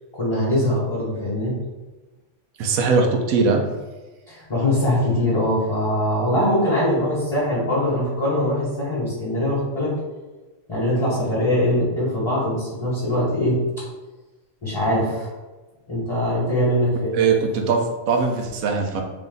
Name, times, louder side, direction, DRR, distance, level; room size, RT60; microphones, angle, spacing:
voice 1, 0.1-1.6 4.3-9.9 10.7-13.6 14.6-15.3 15.9-17.2, left 1 dB, 25° left, -10 dB, 1.1 m, -22 dB
voice 2, 2.6-3.6 17.1-19.0, right 4 dB, 90° right, 3 dB, 1.1 m, -20 dB
3.5 x 2.5 x 3.8 m, 1.2 s
omnidirectional pair, 1.4 m